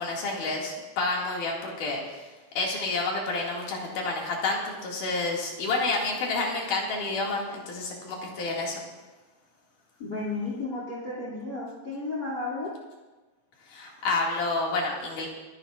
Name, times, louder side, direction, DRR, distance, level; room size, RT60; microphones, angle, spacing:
voice 1, 0.0-2.3 2.6-8.8 13.7-15.3, left 3 dB, 75° left, -2 dB, 3.7 m, -29 dB
voice 2, 10.0-12.7, left 3 dB, 35° left, -5 dB, 3.0 m, -33 dB
26.5 x 10.5 x 2.5 m, 1.2 s
omnidirectional pair, 3.7 m